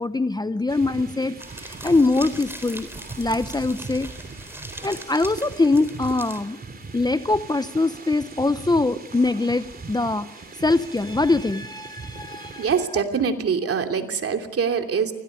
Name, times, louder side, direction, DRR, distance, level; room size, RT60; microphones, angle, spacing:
voice 1, 0.0-2.9 3.2-4.1 4.8-6.6 6.9-10.3 10.5-12.7, left 3 dB, 15° left, 12 dB, 0.8 m, -23 dB
sound 1, 0.7-12.9, right 4 dB, 30° right, 2.8 m, -40 dB
sound 2, 1.4-6.4, right 1 dB, 10° right, 4.0 m, -40 dB
voice 2, 12.6-15.1, right 6 dB, 50° right, 5 dB, 2.9 m, -24 dB
24.5 x 17.5 x 9.9 m, 1.0 s
cardioid pair, 90°, 30 cm